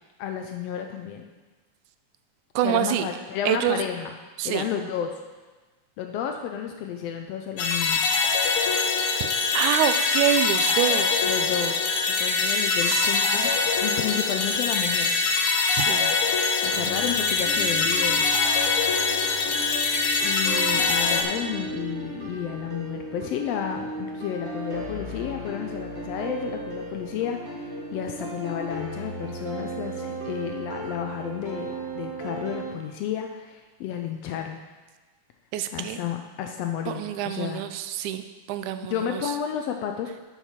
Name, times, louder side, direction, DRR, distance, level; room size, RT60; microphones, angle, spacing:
voice 1, 0.2-1.2 2.6-4.1 4.4-5.1 6.0-8.0 11.2-11.8 12.2-13.5 13.8-15.1 16.6-18.4 20.2-34.6 35.7-37.6 38.9-40.2, left 9 dB, 80° left, 4 dB, 1.4 m, -31 dB
voice 2, 2.6-3.1 3.5-3.8 4.4-4.7 9.2-9.3 9.5-11.2 12.9-13.2 15.7-16.1 35.5-36.0 36.9-38.2 38.5-39.2, right 11 dB, 85° right, 10 dB, 2.0 m, -26 dB
sound 1, 7.6-21.2, left 4 dB, 65° left, 1.5 m, -23 dB
sound 2, 16.7-32.7, right 2 dB, 55° right, 0.7 m, -36 dB
8.2 x 7.1 x 5.7 m, 1.3 s
omnidirectional pair, 3.4 m